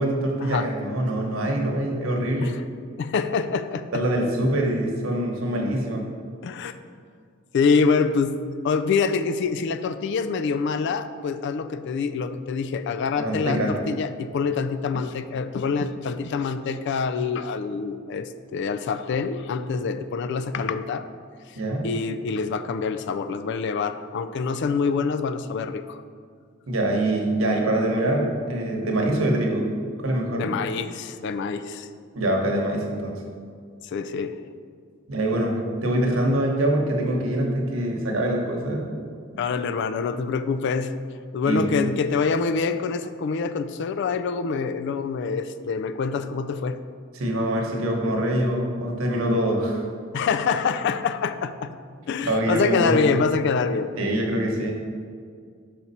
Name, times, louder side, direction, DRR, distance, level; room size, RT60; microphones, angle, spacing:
voice 1, 0.0-2.5 3.9-6.0 13.2-13.7 21.5-21.8 26.7-29.7 30.0-30.5 32.1-33.1 35.1-38.8 41.4-41.7 47.1-49.8 52.3-52.9 54.0-54.7, right 1 dB, 85° right, 0 dB, 1.1 m, -24 dB
voice 2, 3.0-4.0 6.4-6.8 7.5-21.1 21.8-26.0 30.4-31.9 33.8-34.4 39.4-40.9 41.3-46.8 50.1-51.7 52.1-53.9, left 5 dB, 60° left, 11 dB, 0.3 m, -26 dB
5.9 x 5.2 x 4.2 m, 2.1 s
head